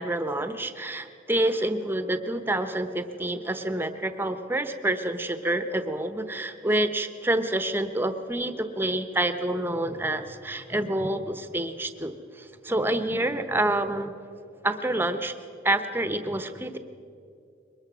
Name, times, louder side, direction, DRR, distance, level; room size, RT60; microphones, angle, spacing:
voice 1, 0.0-14.2 14.6-15.3 15.6-16.8, right 1 dB, 10° right, 9 dB, 0.9 m, -28 dB
22.5 x 20.5 x 6.2 m, 2.7 s
head